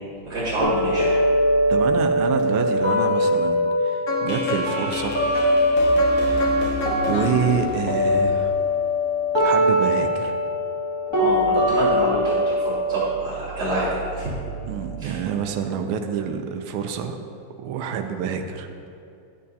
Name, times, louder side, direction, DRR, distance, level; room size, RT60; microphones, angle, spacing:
voice 1, 0.2-1.2 11.2-14.3 15.0-15.2, right 1 dB, 50° right, -8 dB, 2.6 m, -27 dB
sound 1, 0.6-6.6 6.8-14.6, equal, 10° left, 2.1 m, -22 dB
voice 2, 1.7-5.2 6.1-6.8 7.1-8.5 9.4-10.3 14.6-17.2 17.6-18.7, right 7 dB, 85° right, 5 dB, 1.5 m, -27 dB
sound 2, 4.1-9.0, left 2 dB, 60° left, 0.8 m, -29 dB
11.5 x 8.6 x 2.7 m, 2.7 s
omnidirectional pair, 2.3 m